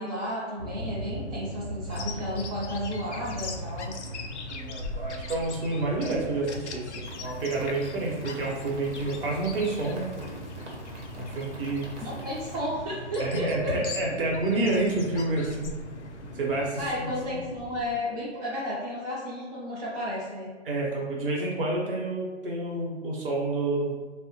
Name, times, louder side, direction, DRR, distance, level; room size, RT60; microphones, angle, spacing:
voice 1, 0.0-3.9 12.0-13.7 16.8-20.5, left 1 dB, 35° right, -8 dB, 0.6 m, -32 dB
sound 1, 0.6-17.9, equal, 20° left, 0.4 m, -40 dB
Bird vocalization bird call bird song, 1.9-17.1, left 5 dB, 70° left, 0.5 m, -44 dB
voice 2, 4.5-10.1 11.1-11.9 13.2-15.8 16.3-17.4 20.6-24.0, right 2 dB, 50° right, -3 dB, 0.9 m, -29 dB
sound 2, 7.1-12.6, right 1 dB, 80° right, 1.0 m, -46 dB
2.9 x 2.1 x 2.8 m, 1.4 s
hypercardioid pair, 145°, 35 cm